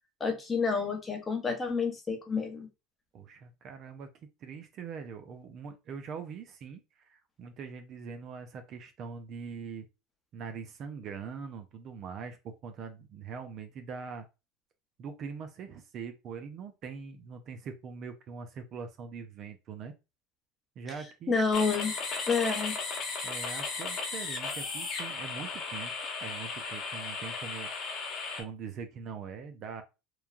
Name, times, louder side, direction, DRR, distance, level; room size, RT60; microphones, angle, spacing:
voice 1, 0.2-2.7 21.3-22.0 22.3-22.8, left 5 dB, 20° left, 0.8 m, -29 dB
voice 2, 3.1-4.1 4.4-9.9 10.3-14.3 15.0-19.9 20.8-21.4 23.2-27.7 28.4-29.8, right 6 dB, 45° right, 0.5 m, -42 dB
sound 1, 21.5-28.4, left 4 dB, 45° left, 1.1 m, -36 dB
3.0 x 2.2 x 2.4 m
supercardioid pair, 100°, 0 cm